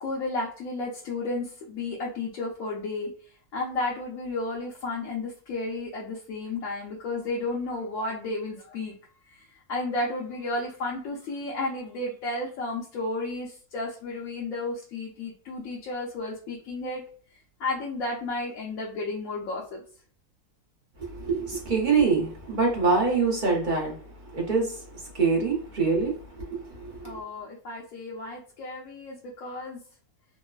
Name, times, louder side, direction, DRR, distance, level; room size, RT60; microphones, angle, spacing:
voice 1, 0.0-3.1 3.5-8.9 9.3-17.0 17.6-19.8 27.0-29.8, left 2 dB, 65° left, -3 dB, 1.0 m, -32 dB
voice 2, 21.0-27.2, right 4 dB, 45° right, -2 dB, 0.7 m, -25 dB
3.0 x 2.0 x 2.3 m, 0.43 s
omnidirectional pair, 1.6 m